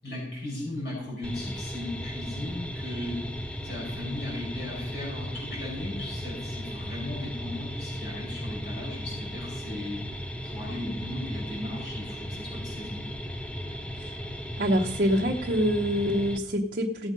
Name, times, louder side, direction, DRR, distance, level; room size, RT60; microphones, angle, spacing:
voice 1, 0.0-3.2 3.6-10.0 10.4-13.0, left 1 dB, 70° left, -3 dB, 6.1 m, -37 dB
sound 1, 1.2-16.4, equal, 5° left, 0.7 m, -36 dB
voice 2, 14.6-17.1, equal, 50° right, -1 dB, 1.1 m, -26 dB
17.0 x 7.4 x 5.4 m, 0.82 s
head